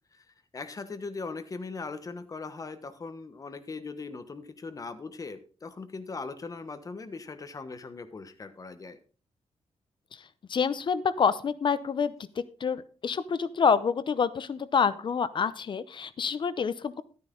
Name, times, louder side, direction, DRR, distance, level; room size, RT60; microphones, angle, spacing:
voice 1, 0.5-9.0, left 4 dB, 35° left, 10 dB, 1.2 m, -40 dB
voice 2, 10.5-12.1 12.6-17.0, left 6 dB, 50° left, 15 dB, 0.7 m, -27 dB
13.0 x 9.7 x 3.8 m, 0.37 s
wide cardioid pair, 140°, 11 cm